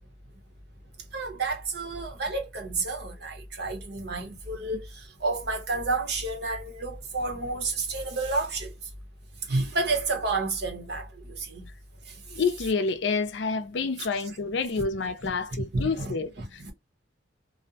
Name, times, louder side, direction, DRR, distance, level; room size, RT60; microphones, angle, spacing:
voice 1, 1.1-8.7 9.5-11.6 14.8-14.9 15.5-16.7, right 3 dB, 55° right, 0.8 m, -30 dB
voice 2, 12.3-16.7, left 4 dB, 65° left, 0.4 m, -28 dB
2.5 x 2.0 x 2.7 m
head